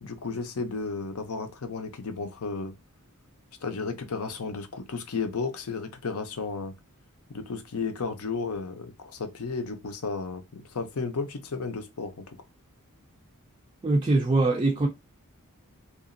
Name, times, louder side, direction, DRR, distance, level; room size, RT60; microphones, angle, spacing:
voice 1, 0.0-2.7 3.6-6.7 7.3-12.4, left 4 dB, 70° left, 0.6 m, -33 dB
voice 2, 13.8-14.9, right 2 dB, 20° right, 0.4 m, -22 dB
2.8 x 2.4 x 2.5 m
head